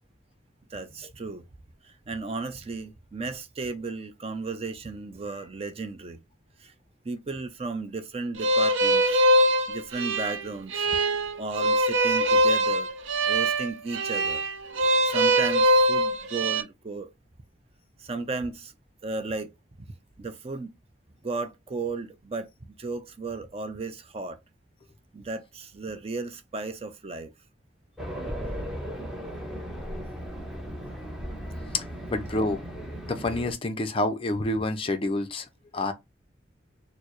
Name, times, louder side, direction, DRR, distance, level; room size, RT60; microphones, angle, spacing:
voice 1, 0.7-1.4 1.8-6.2 6.6-6.7 7.0-9.1 9.7-10.9 11.4-12.9 13.3-14.4 15.1-17.1 18.0-18.7 19.0-19.5 20.2-20.7 21.2-22.5 22.8-24.4 25.1-27.3 32.0-32.1, right 3 dB, 30° right, 0.4 m, -34 dB
sound 1, 8.4-16.6, right 1 dB, 85° right, 0.6 m, -23 dB
Race car auto racing, 28.0-33.5, equal, 5° right, 0.7 m, -36 dB
voice 2, 32.1-32.6 33.1-35.5 35.7-35.9, left 2 dB, 30° left, 0.4 m, -28 dB
4.4 x 2.0 x 2.9 m
head